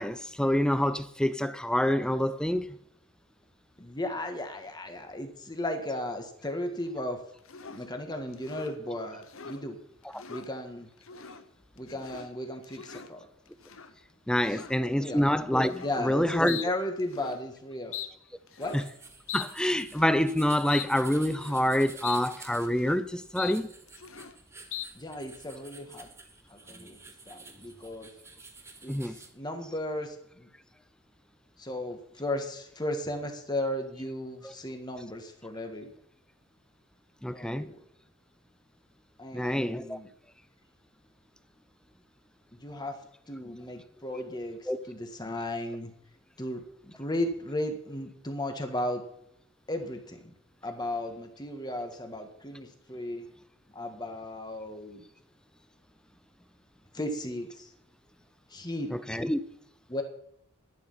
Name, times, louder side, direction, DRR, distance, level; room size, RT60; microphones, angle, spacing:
voice 1, 0.0-2.8 10.1-10.2 14.3-16.7 18.7-18.8 19.3-23.7 26.8-26.9 28.9-29.2 34.4-34.5 37.2-37.7 39.3-40.0 44.1-44.3 44.7-44.8 58.9-59.4, equal, 5° left, 0.6 m, -27 dB
voice 2, 3.8-7.2 7.7-9.8 10.3-10.9 11.8-13.3 14.5-15.2 15.8-17.9 18.6-18.8 24.9-26.1 26.5-27.0 27.3-28.1 28.8-29.0 29.3-30.5 31.6-35.9 37.3-37.8 39.2-40.1 42.6-43.0 43.3-45.9 46.4-49.0 49.7-50.3 50.6-53.3 53.7-55.0 56.9-57.7 58.5-58.9 59.9-60.0, left 1 dB, 20° left, 1.8 m, -35 dB
sound 1, 7.5-7.9 8.3-8.8 9.2-9.6 10.0-10.5 11.0-11.4 11.8-12.3 12.6-13.1 13.6-13.9 14.4-14.8 15.6-16.0 16.5-16.7 17.0-17.4 17.9-18.1 18.5-18.9 19.3-19.5 19.9-20.2 20.7-20.9 21.3-21.7 22.0-22.2 22.5-23.0 23.4-23.6 23.9-24.4 24.7-24.9, left 9 dB, 65° left, 1.0 m, -40 dB
sound 2, 18.6-29.3, right 3 dB, 10° right, 1.3 m, -50 dB
12.0 x 11.0 x 5.8 m
head